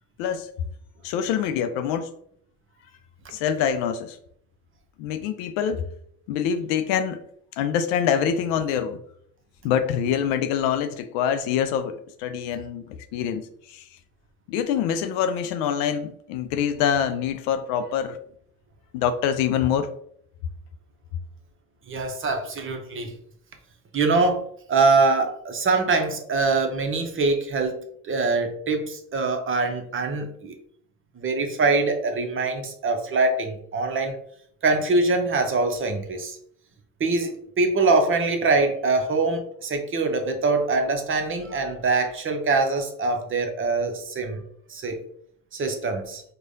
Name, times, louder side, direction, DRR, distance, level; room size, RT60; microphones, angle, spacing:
voice 1, 0.2-0.5 1.0-2.1 3.3-4.2 5.0-5.8 6.3-7.2 7.6-9.0 9.6-12.8 13.1-13.9 14.5-18.2 18.9-19.9, left 8 dB, 60° left, 10 dB, 0.5 m, -25 dB
voice 2, 21.9-23.1 23.9-24.4 24.7-27.7 28.0-30.5 31.2-34.2 34.6-36.4 37.0-44.4 44.7-45.0 45.5-46.2, right 3 dB, 30° right, 5 dB, 0.8 m, -23 dB
4.7 x 2.3 x 2.6 m, 0.68 s
hypercardioid pair, 60°, 43 cm